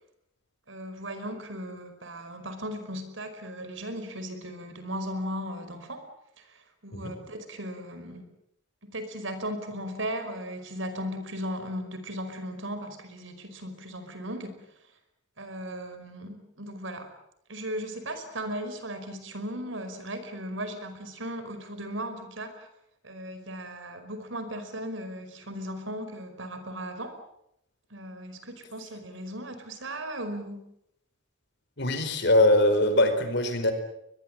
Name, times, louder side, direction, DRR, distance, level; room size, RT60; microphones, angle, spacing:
voice 1, 0.7-6.0 6.4-8.2 8.8-14.6 15.4-17.1 17.5-22.7 23.0-27.2 27.9-30.6, equal, 75° right, 9 dB, 5.1 m, -37 dB
voice 2, 31.8-33.7, left 1 dB, 60° left, 9 dB, 4.6 m, -22 dB
22.5 x 22.0 x 8.9 m, 0.77 s
head